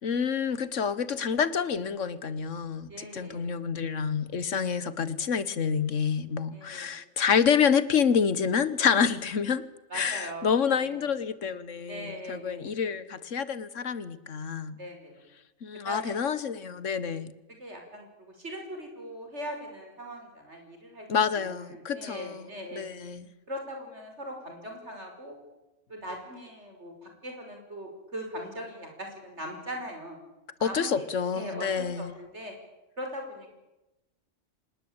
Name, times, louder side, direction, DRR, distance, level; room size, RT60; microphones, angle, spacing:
voice 1, 0.0-9.6 9.9-14.7 15.6-17.3 21.1-22.4 22.7-23.3 30.6-32.1, left 6 dB, 85° left, 1.6 m, -28 dB
voice 2, 2.9-3.5 6.5-6.9 9.9-10.5 10.7-11.0 11.9-12.7 14.8-15.2 15.7-16.2 17.6-21.1 21.4-22.8 23.5-25.4 25.9-30.2 30.6-31.1 31.3-32.5 33.0-33.6, equal, 65° right, 5.9 m, -40 dB
25.5 x 19.5 x 8.8 m
omnidirectional pair, 1.3 m